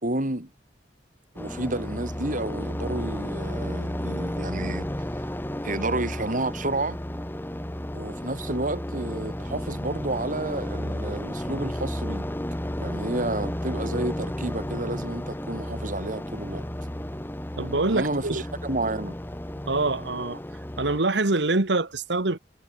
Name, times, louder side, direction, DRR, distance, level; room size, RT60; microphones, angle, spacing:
voice 1, 0.0-0.5 1.4-4.9 5.6-7.0 7.9-12.3 12.8-16.7 17.9-19.2, right 2 dB, 50° right, 3.7 m, -30 dB
sound 1, 1.4-21.0, equal, 10° left, 1.5 m, -33 dB
voice 2, 17.6-18.4 19.7-20.4 20.8-22.4, right 2 dB, 70° right, 1.6 m, -25 dB
head